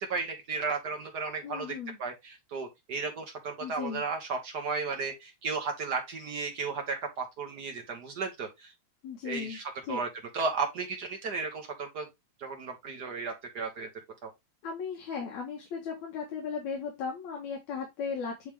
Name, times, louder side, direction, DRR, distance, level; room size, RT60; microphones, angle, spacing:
voice 1, 0.1-8.7 9.2-10.1 10.3-12.1 12.4-13.9 14.2-14.3, right 4 dB, 65° right, 0.9 m, -34 dB
voice 2, 1.4-2.0 3.6-4.0 9.0-9.6 9.9-10.0 14.6-18.5, left 6 dB, 70° left, 2.7 m, -36 dB
8.5 x 3.2 x 3.4 m
omnidirectional pair, 3.4 m